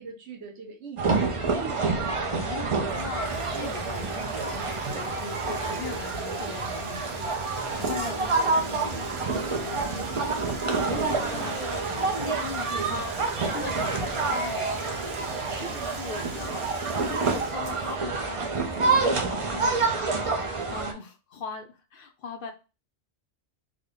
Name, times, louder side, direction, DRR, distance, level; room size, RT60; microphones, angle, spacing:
voice 1, 0.0-2.6 3.5-3.9 10.9-12.3 15.5-16.1, right 4 dB, 90° right, 1.1 m, -42 dB
sound 1, 1.0-20.9, right 4 dB, 45° right, 0.4 m, -28 dB
voice 2, 2.3-2.7 2.9-10.4 10.8-14.8 15.6-22.5, left 5 dB, 60° left, 0.7 m, -40 dB
Bathtub (filling or washing), 2.8-19.6, right 4 dB, 65° right, 1.0 m, -42 dB
3.5 x 2.1 x 3.6 m
omnidirectional pair, 1.2 m